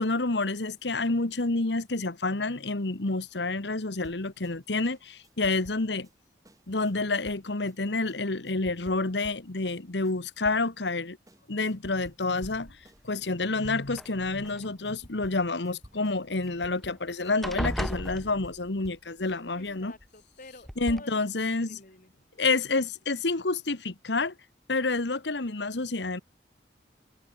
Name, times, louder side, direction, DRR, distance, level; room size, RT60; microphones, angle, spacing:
voice 1, 0.0-6.1 6.7-11.2 11.5-12.8 13.0-19.9 20.8-21.8 22.4-24.3 24.7-26.2, left 3 dB, 80° left, 1.5 m, -29 dB
sound 1, 4.0-11.0 11.3-12.6 12.8-19.8, equal, 20° right, 6.9 m, -54 dB
sound 2, 12.4-13.0 13.8-14.7 16.5-16.6 16.9-17.1 17.4-18.9 20.0-20.1 20.6-21.0, equal, ahead, 1.0 m, -35 dB
voice 2, 19.5-21.2 21.5-22.1, left 2 dB, 50° left, 6.4 m, -50 dB
head